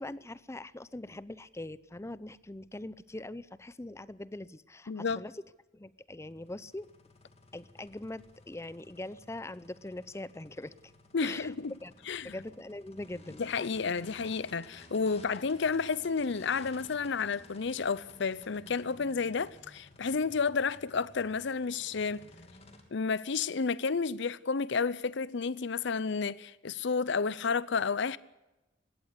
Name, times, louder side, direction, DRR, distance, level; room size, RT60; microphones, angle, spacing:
voice 1, 0.0-5.4 5.7-6.9 7.5-10.7 11.2-11.5 11.8-11.9 12.2-13.4, left 1 dB, 15° left, 0.6 m, -42 dB
voice 2, 4.9-5.2 11.1-11.7 12.1-12.3 13.4-22.2 22.9-28.2, left 5 dB, 65° left, 0.6 m, -31 dB
sound 1, 6.2-22.8, left 2 dB, 35° left, 2.8 m, -56 dB
20.5 x 16.0 x 8.3 m
head